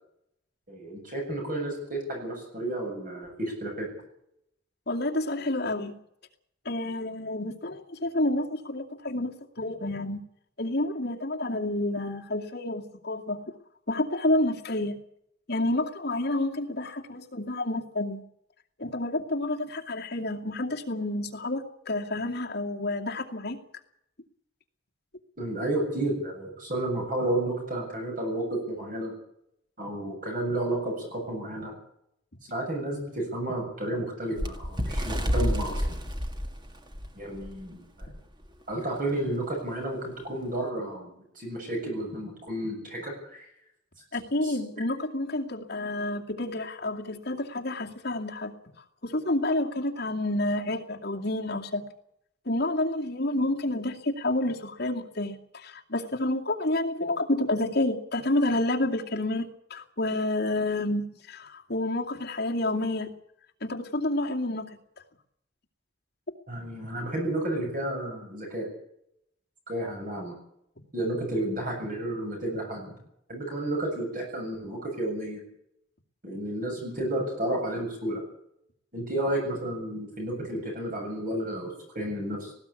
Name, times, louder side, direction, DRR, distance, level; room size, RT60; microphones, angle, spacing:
voice 1, 0.7-3.9 25.4-29.1 29.8-31.7 32.5-36.0 37.2-38.1 38.7-43.5 44.4-44.6 66.5-68.7 69.7-70.4 70.9-73.0 73.3-75.4 76.2-78.2 78.9-82.5, right 1 dB, 45° right, 1 dB, 7.5 m, -31 dB
voice 2, 4.9-5.9 6.6-10.2 10.6-13.4 13.9-15.0 15.5-18.2 18.8-23.6 44.1-51.8 52.5-59.4 59.7-63.1 63.6-64.8, left 1 dB, 55° left, 1 dB, 2.4 m, -29 dB
Bird, 34.4-37.5 38.0-38.2 38.5-38.7 39.5-39.6, equal, 25° right, 1.8 m, -29 dB
19.0 x 17.0 x 8.5 m, 0.75 s
head